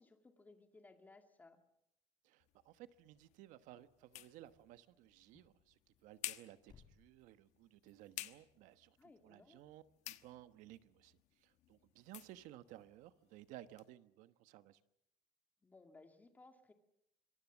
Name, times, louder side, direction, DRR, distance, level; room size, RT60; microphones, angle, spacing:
voice 1, 0.0-1.6 9.0-9.6 15.6-16.7, left 3 dB, 15° left, 6 dB, 2.2 m, -62 dB
voice 2, 2.2-14.8, right 14 dB, 80° right, 12 dB, 1.2 m, -58 dB
sound 1, 2.4-13.9, left 15 dB, 65° left, 1.2 m, -54 dB
sound 2, 3.0-9.7, left 7 dB, 35° left, 3.8 m, -72 dB
26.0 x 23.5 x 7.3 m, 0.79 s
cardioid pair, 170°, 13 cm